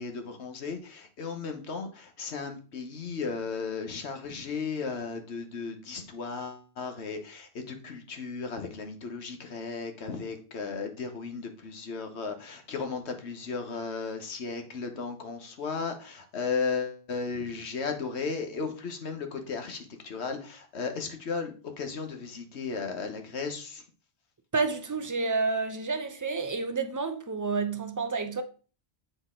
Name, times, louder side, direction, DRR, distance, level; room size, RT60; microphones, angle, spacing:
voice 1, 0.0-23.8, left 5 dB, 85° left, 1.3 m, -35 dB
voice 2, 24.5-28.4, right 4 dB, 25° right, 0.4 m, -29 dB
7.7 x 4.1 x 3.7 m
omnidirectional pair, 1.1 m